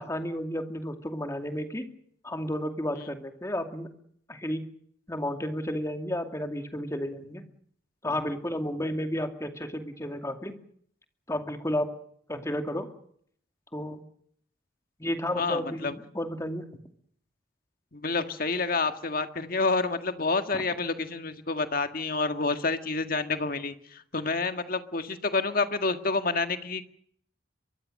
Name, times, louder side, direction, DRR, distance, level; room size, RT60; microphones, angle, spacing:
voice 1, 0.0-1.9 2.2-3.9 4.3-4.7 5.1-7.4 8.0-10.6 11.3-11.9 12.3-12.9 13.7-14.0 15.0-16.7 20.5-20.6, left 1 dB, 15° left, 6 dB, 2.3 m, -32 dB
voice 2, 15.4-15.9 17.9-26.8, left 3 dB, 50° left, 8 dB, 1.7 m, -28 dB
23.5 x 23.0 x 6.5 m, 0.64 s
head